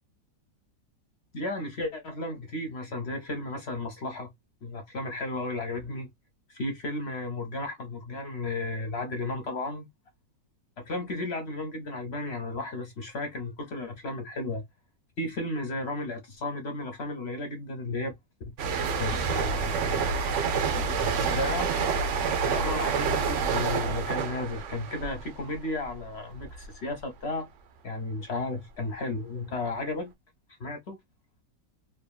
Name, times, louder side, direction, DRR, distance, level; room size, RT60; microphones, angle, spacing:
voice 1, 1.3-4.3 4.6-6.1 6.5-9.9 10.8-14.6 15.2-18.1 19.0-20.1 20.7-21.7 22.3-27.5 27.8-30.1 30.6-31.0, left 2 dB, 55° left, 0.7 m, -34 dB
sound 1, 18.6-26.0 26.3-26.7, right 5 dB, 70° right, 0.7 m, -28 dB
2.9 x 2.6 x 2.2 m
omnidirectional pair, 1.9 m